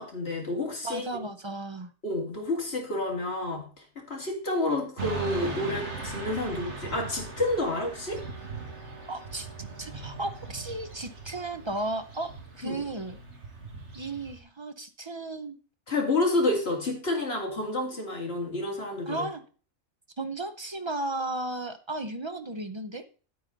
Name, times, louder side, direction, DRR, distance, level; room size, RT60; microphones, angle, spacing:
voice 1, 0.0-1.1 2.0-8.2 12.6-12.8 15.9-19.3, left 2 dB, 45° left, 0 dB, 2.9 m, -29 dB
voice 2, 0.8-1.9 9.1-9.5 9.8-13.2 13.9-15.6 19.1-19.4 20.2-23.0, right 2 dB, 35° right, 8 dB, 0.4 m, -34 dB
Motorcycle / Traffic noise roadway noise, 5.0-14.4, right 4 dB, 55° right, 2.1 m, -39 dB
9.3 x 8.8 x 4.0 m, 0.38 s
omnidirectional pair, 1.4 m